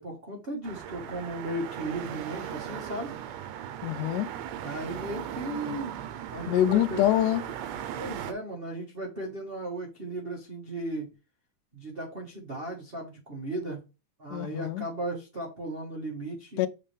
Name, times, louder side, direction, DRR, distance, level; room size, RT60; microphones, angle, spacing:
voice 1, 0.0-3.1 4.6-7.0 7.9-11.1 11.7-13.8 14.2-16.7, right 1 dB, 55° right, 0.6 m, -36 dB
sound 1, 0.6-8.3, right 10 dB, 90° right, 2.3 m, -38 dB
voice 2, 3.8-4.3 6.5-7.5 14.3-14.8 16.6-16.7, left 12 dB, 85° left, 2.1 m, -25 dB
7.3 x 4.2 x 3.3 m
omnidirectional pair, 3.6 m